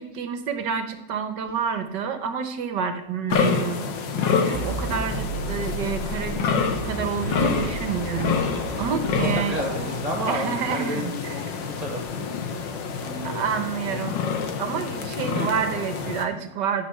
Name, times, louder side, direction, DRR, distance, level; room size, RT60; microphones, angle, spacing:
voice 1, 0.0-3.8 4.5-9.6 10.3-11.6 13.2-14.2 14.6-16.9, right 6 dB, 75° right, 8 dB, 1.7 m, -29 dB
sound 1, 3.3-16.2, left 5 dB, 85° left, 1.8 m, -28 dB
sound 2, 4.5-10.7, right 3 dB, 40° right, 0.9 m, -34 dB
voice 2, 9.2-12.2 12.5-13.4 13.9-14.0 15.2-15.5 16.0-16.1, equal, 20° right, -1 dB, 2.6 m, -32 dB
12.5 x 5.1 x 6.9 m, 0.88 s
omnidirectional pair, 1.9 m